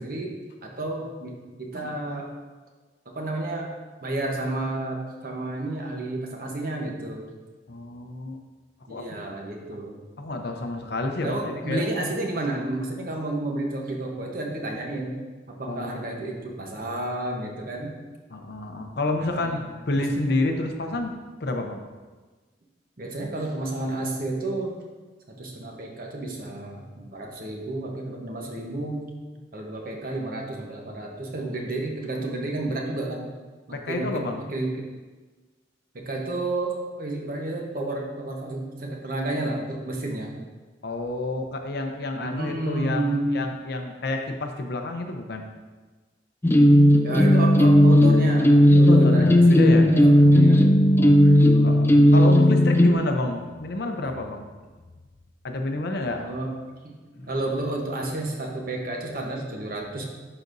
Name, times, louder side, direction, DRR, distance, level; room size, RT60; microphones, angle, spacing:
voice 1, 0.0-2.3 3.1-3.7 4.0-7.2 8.9-9.9 11.2-15.2 15.5-18.0 19.3-19.6 23.0-24.8 25.3-29.1 29.5-33.3 33.7-34.8 35.9-40.3 42.2-43.4 47.0-50.7 51.4-52.1 56.2-56.5 56.8-57.0 57.3-60.0, right 2 dB, 50° right, 0 dB, 1.0 m, -31 dB
voice 2, 7.7-8.4 8.9-9.2 10.2-11.8 15.7-16.0 18.3-21.1 21.4-21.8 33.7-34.4 40.8-45.4 48.7-49.9 50.2-50.3 50.7-51.4 51.6-54.5 55.4-56.2 57.2-57.4, left 2 dB, 60° left, 4 dB, 0.6 m, -29 dB
sound 1, 46.4-52.9, equal, 10° left, 0.3 m, -15 dB
11.0 x 4.0 x 2.6 m, 1.3 s
head